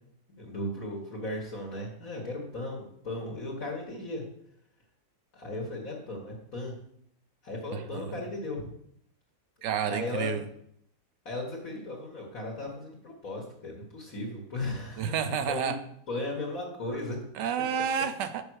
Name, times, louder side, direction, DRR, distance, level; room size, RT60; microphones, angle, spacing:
voice 1, 0.3-4.2 5.3-6.7 7.4-8.7 9.9-10.4 11.3-15.1 15.5-15.7 16.1-17.2, left 2 dB, 50° left, -3 dB, 1.9 m, -36 dB
voice 2, 7.7-8.1 9.6-10.4 15.0-15.8 17.4-18.4, right 7 dB, 75° right, 10 dB, 1.2 m, -30 dB
6.6 x 5.4 x 6.2 m, 0.70 s
omnidirectional pair, 1.9 m